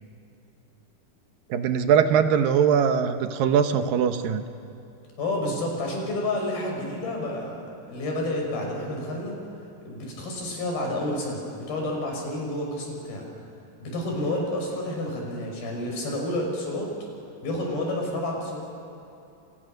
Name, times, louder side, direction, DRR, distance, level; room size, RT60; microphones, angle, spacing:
voice 1, 1.5-4.5, right 7 dB, 75° right, 8 dB, 2.9 m, -21 dB
voice 2, 5.2-7.6 7.9-9.4 9.9-13.2 13.8-16.9 17.4-18.6, left 1 dB, 90° left, 0 dB, 7.7 m, -29 dB
29.5 x 28.0 x 6.7 m, 2.8 s
omnidirectional pair, 4.1 m